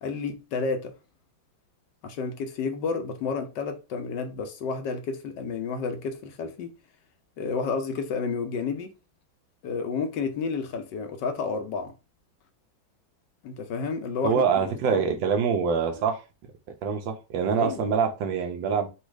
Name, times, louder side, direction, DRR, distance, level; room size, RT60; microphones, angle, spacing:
voice 1, 0.0-0.9 2.0-6.7 7.4-8.9 9.6-11.9 13.4-15.0 17.6-17.9, left 5 dB, 70° left, 1.3 m, -31 dB
voice 2, 14.2-16.2 16.8-18.9, right 6 dB, 75° right, 1.5 m, -25 dB
4.2 x 2.4 x 4.7 m
omnidirectional pair, 2.1 m